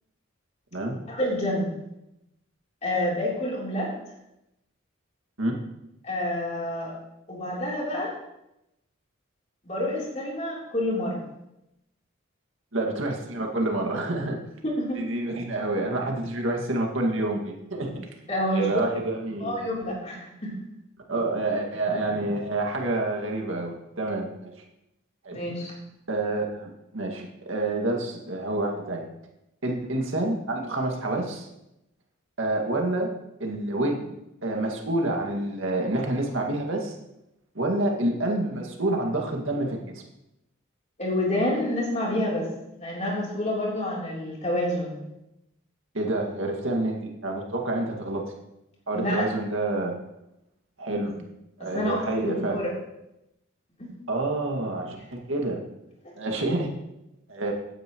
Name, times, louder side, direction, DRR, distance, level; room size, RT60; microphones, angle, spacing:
voice 1, 0.8-1.8 2.8-3.9 6.0-6.9 7.3-8.1 9.6-11.2 14.6-15.0 18.3-18.8 19.4-20.5 25.3-25.7 41.0-42.5 42.8-45.0 48.9-49.3 51.7-52.7 53.8-53.9, left 1 dB, 35° left, -4 dB, 3.5 m, -28 dB
voice 2, 12.7-14.4 15.0-17.9 18.5-19.7 21.1-24.5 25.2-25.4 26.1-29.1 29.6-31.5 32.4-34.1 34.4-36.9 37.5-40.0 45.9-48.3 48.9-50.0 50.8-51.1 51.6-52.6 54.1-55.6 56.1-56.7 57.3-57.5, right 2 dB, 75° right, 1 dB, 2.1 m, -28 dB
16.0 x 9.8 x 3.1 m, 0.88 s
head